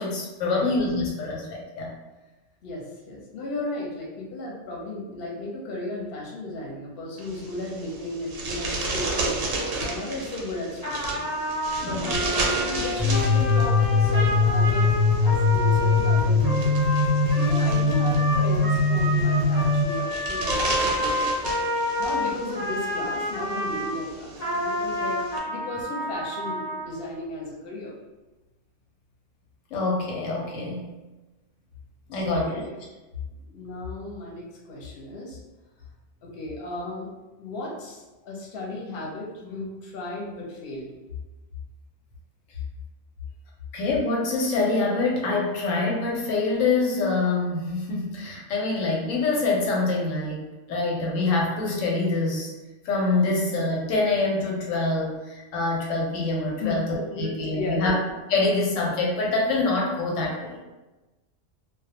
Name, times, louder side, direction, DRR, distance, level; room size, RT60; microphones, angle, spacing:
voice 1, 0.0-1.9 11.8-12.1 29.7-30.9 32.1-32.6 43.7-52.5 52.8-57.9 58.3-60.6, left 3 dB, 90° left, -2 dB, 1.0 m, -25 dB
voice 2, 2.6-9.4 9.8-11.3 11.8-14.9 15.2-16.7 17.3-21.3 22.0-25.2 25.5-27.9 32.1-32.7 33.4-35.4 36.2-37.1 37.4-40.9 56.6-56.8 57.1-58.0, left 2 dB, 55° left, -3 dB, 0.8 m, -35 dB
sound 1, 7.2-25.4, right 2 dB, 90° right, 1.0 m, -34 dB
Trumpet, 10.8-23.9 24.4-26.9, left 1 dB, 15° left, 0.9 m, -29 dB
sound 2, 13.0-19.8, left 3 dB, 30° right, 0.5 m, -21 dB
2.2 x 2.1 x 2.8 m, 1.1 s
omnidirectional pair, 1.3 m